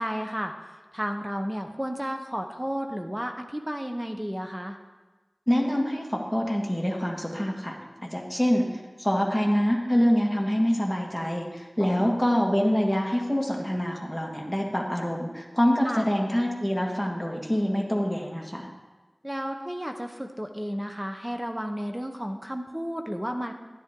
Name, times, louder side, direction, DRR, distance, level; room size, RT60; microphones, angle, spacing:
voice 1, 0.0-4.8 11.8-12.2 15.8-16.1 19.2-23.5, equal, 15° right, 4 dB, 0.8 m, -32 dB
voice 2, 5.5-7.8 8.1-18.7, equal, 5° left, -1 dB, 1.7 m, -25 dB
10.5 x 10.5 x 3.7 m, 1.3 s
wide cardioid pair, 45°, 0 cm